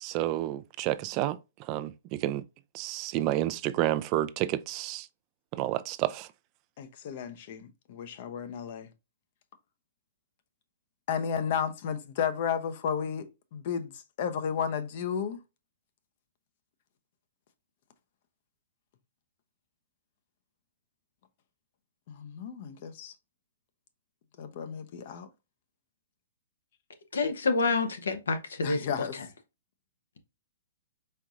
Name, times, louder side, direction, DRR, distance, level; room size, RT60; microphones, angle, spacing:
voice 1, 0.0-1.4 1.7-2.4 2.7-5.1 5.6-6.3, right 14 dB, 35° right, 0.3 m, -30 dB
voice 2, 6.8-8.9 11.1-15.4 22.1-23.1 24.4-25.3 28.6-29.2, left 7 dB, 50° left, 0.7 m, -33 dB
voice 3, 27.1-28.8, left 3 dB, 80° left, 0.9 m, -27 dB
4.5 x 3.7 x 2.5 m
hypercardioid pair, 125°, 0 cm